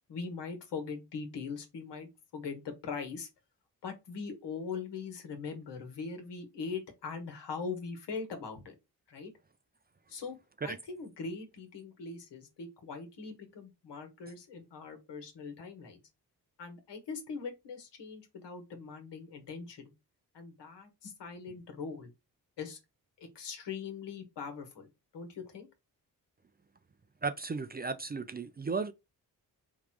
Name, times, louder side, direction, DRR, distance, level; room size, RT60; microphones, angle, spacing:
voice 1, 0.1-3.3 3.8-8.7 9.1-9.3 10.1-16.0 16.6-19.9 20.3-22.1 22.6-22.8 23.2-25.7, left 5 dB, 70° left, 1.3 m, -41 dB
voice 2, 27.2-28.9, right 4 dB, 25° right, 0.4 m, -35 dB
3.5 x 2.3 x 4.4 m
supercardioid pair, 45°, 43 cm